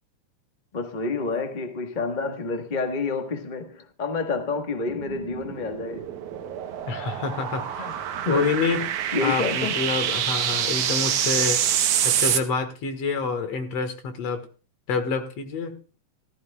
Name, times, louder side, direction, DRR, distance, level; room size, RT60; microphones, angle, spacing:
voice 1, 0.7-6.1 7.8-8.5 9.1-9.7, left 4 dB, 40° left, 0.6 m, -29 dB
sound 1, 4.9-12.4, right 10 dB, 90° right, 2.4 m, -26 dB
voice 2, 6.9-7.7 8.3-8.9 9.2-11.6 12.0-14.5 14.9-16.0, left 5 dB, 60° left, 2.6 m, -27 dB
14.5 x 14.0 x 2.3 m
omnidirectional pair, 3.3 m